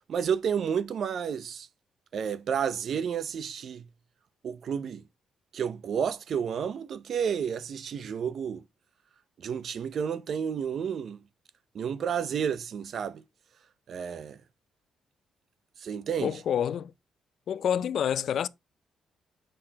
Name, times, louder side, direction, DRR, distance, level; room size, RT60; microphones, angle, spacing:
voice 1, 0.1-1.7 2.1-3.8 4.4-5.0 5.5-8.6 9.4-11.2 11.7-13.2 13.9-14.4 15.8-16.4, right 7 dB, 55° right, 0.6 m, -31 dB
voice 2, 16.2-16.9 17.5-18.5, left 9 dB, 65° left, 0.4 m, -28 dB
7.7 x 6.5 x 2.8 m
cardioid pair, 110°, 0 cm